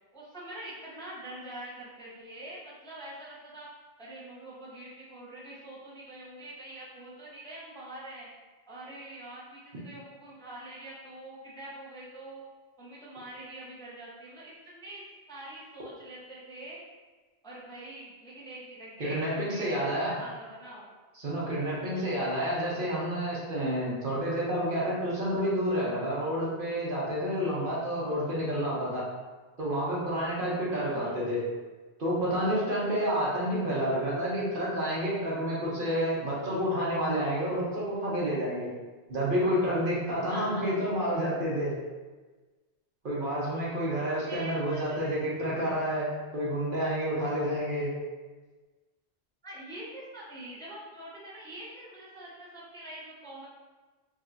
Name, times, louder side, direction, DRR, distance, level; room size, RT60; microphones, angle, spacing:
voice 1, 0.1-3.7 4.0-8.3 8.7-12.5 12.8-15.0 15.3-16.8 17.4-21.0 21.8-22.2 30.9-31.2 39.6-39.7 40.3-41.0 44.2-45.2 49.4-53.5, right 1 dB, 5° left, -7 dB, 0.6 m, -44 dB
voice 2, 19.0-20.2 21.2-29.0 29.6-31.4 32.0-38.7 39.1-41.7 43.0-47.9, equal, 60° right, -6 dB, 1.1 m, -29 dB
4.9 x 2.6 x 2.7 m, 1.3 s
omnidirectional pair, 1.0 m